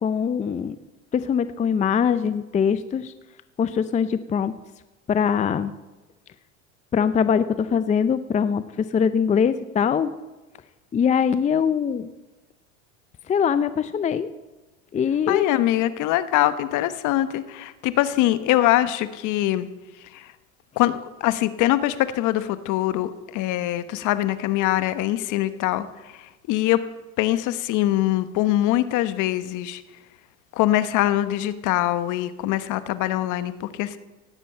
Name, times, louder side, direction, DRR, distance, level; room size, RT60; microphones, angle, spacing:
voice 1, 0.0-0.8 1.1-3.1 3.6-4.5 5.1-5.7 6.9-8.6 8.9-10.1 10.9-12.1 13.3-14.3 14.9-15.4, left 7 dB, 20° left, 13 dB, 0.5 m, -22 dB
voice 2, 15.3-19.7 20.1-20.3 20.8-26.8 27.2-29.8 30.5-34.0, left 14 dB, 55° left, 13 dB, 1.1 m, -23 dB
17.5 x 7.6 x 8.8 m, 1.1 s
supercardioid pair, 115°, 36 cm